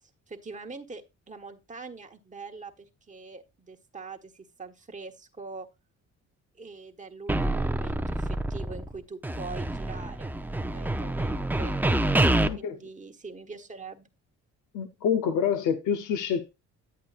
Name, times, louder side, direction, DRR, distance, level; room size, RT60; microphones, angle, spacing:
voice 1, 0.0-5.7 6.6-10.3 10.6-11.8 12.2-14.1, right 4 dB, 25° right, 1.4 m, -43 dB
sound 1, 7.3-9.0 9.2-12.5, right 1 dB, 5° right, 0.6 m, -27 dB
voice 2, 12.4-12.8 14.7-16.5, left 7 dB, 80° left, 0.9 m, -27 dB
10.5 x 8.1 x 2.5 m
cardioid pair, 90°, 30 cm